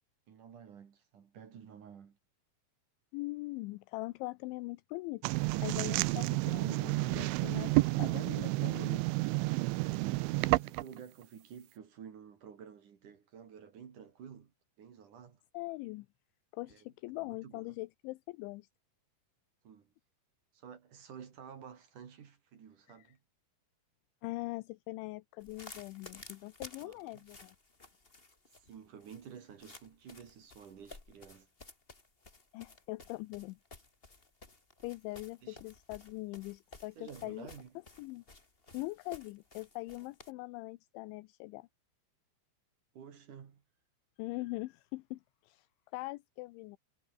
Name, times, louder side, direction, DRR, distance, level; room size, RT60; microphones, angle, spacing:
voice 1, 0.3-2.2 10.1-14.5 14.8-15.4 16.7-16.8 17.1-17.8 19.6-19.9 20.5-23.2 26.8-27.2 28.5-31.5 35.4-35.6 37.0-37.7 42.9-43.6, right 7 dB, 50° right, 3.1 m, -52 dB
voice 2, 3.1-9.0 15.5-16.1 16.5-18.7 23.0-23.1 24.2-27.6 32.5-33.6 34.8-37.5 38.0-38.2 38.7-41.7 44.2-45.7 45.9-46.8, left 22 dB, 80° left, 2.9 m, -42 dB
sound 1, 5.2-11.0, right 22 dB, 85° right, 2.9 m, -30 dB
sound 2, 25.4-40.3, left 3 dB, 35° left, 0.8 m, -54 dB
omnidirectional pair, 5.8 m